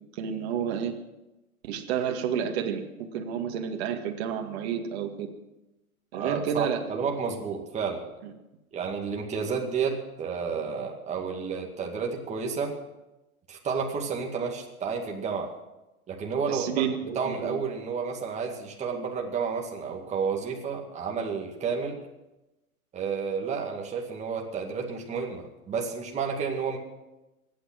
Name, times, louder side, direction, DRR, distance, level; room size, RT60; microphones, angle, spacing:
voice 1, 0.2-0.9 1.7-2.8 3.1-5.3 6.1-6.8 8.2-8.3 16.5-17.6, right 8 dB, 45° right, 3 dB, 2.1 m, -30 dB
voice 2, 6.1-8.1 8.7-12.8 13.5-15.5 16.1-22.0 22.9-26.8, right 5 dB, 15° right, 0 dB, 2.2 m, -31 dB
24.0 x 9.3 x 6.2 m, 1.0 s
hypercardioid pair, 120°, 43 cm